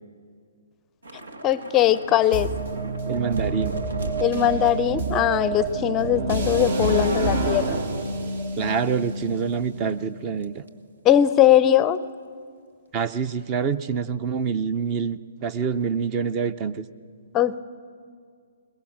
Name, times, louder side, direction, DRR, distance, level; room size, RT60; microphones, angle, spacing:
Thunder / Rain, 1.0-9.6 9.9-10.1 10.4-10.7, right 1 dB, 75° right, 2.1 m, -37 dB
voice 1, 1.4-2.5 4.2-7.8 11.0-12.0 17.3-17.6, left 11 dB, 20° left, 17 dB, 0.5 m, -20 dB
sound 1, 2.3-10.2, right 2 dB, 60° right, 2.3 m, -28 dB
voice 2, 3.1-3.7 8.5-10.6 12.9-16.9, right 6 dB, 30° right, 15 dB, 0.7 m, -26 dB
21.5 x 21.5 x 7.3 m, 2.1 s
hypercardioid pair, 135°, 0 cm